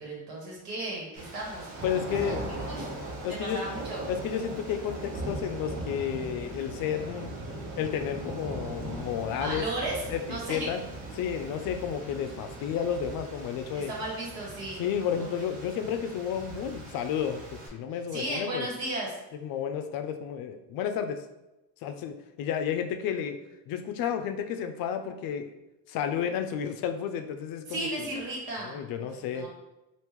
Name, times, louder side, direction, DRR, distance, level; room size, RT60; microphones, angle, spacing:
voice 1, 0.0-1.7 2.1-2.9 3.3-4.0 9.4-10.0 10.3-10.7 13.7-14.8 15.2-15.3 18.1-19.1 27.7-29.5, right 2 dB, 70° right, -3 dB, 1.5 m, -35 dB
sound 1, 1.2-17.7, right 2 dB, 90° right, 1.1 m, -39 dB
voice 2, 1.8-2.5 3.2-3.6 4.1-7.3 7.8-9.7 10.1-10.8 11.1-13.9 14.8-18.7 19.4-21.2 21.8-23.4 23.7-25.5 25.9-27.9 28.7-29.5, left 8 dB, 65° left, 7 dB, 0.5 m, -31 dB
3.5 x 2.5 x 3.0 m, 0.96 s
cardioid pair, 115°, 37 cm